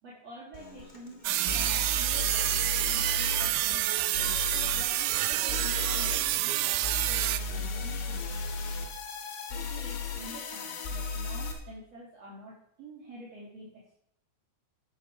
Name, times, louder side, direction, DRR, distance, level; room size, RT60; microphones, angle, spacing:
voice 1, 0.0-4.2 4.7-8.8 9.5-13.9, right 1 dB, 40° right, -7 dB, 3.7 m, -48 dB
Human voice / Acoustic guitar, 0.5-6.9, left 1 dB, 45° left, 0.5 m, -49 dB
sound 1, 0.8-0.9 1.5-3.5 4.1-4.8 5.5-6.2 6.8-11.5, left 3 dB, 85° left, 4.1 m, -35 dB
sound 2, 1.2-7.4, right 15 dB, 85° right, 2.3 m, -28 dB
11.5 x 9.1 x 6.3 m, 0.71 s
omnidirectional pair, 5.3 m